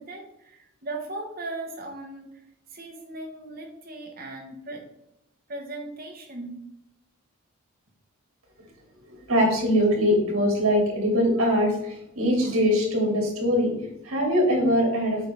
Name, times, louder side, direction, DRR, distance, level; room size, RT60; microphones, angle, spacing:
voice 1, 0.0-2.4 2.7-4.9 5.5-6.6, right 2 dB, 40° right, 1 dB, 1.3 m, -38 dB
voice 2, 9.0-15.3, equal, 75° right, -1 dB, 2.6 m, -22 dB
7.8 x 4.0 x 3.5 m, 0.80 s
head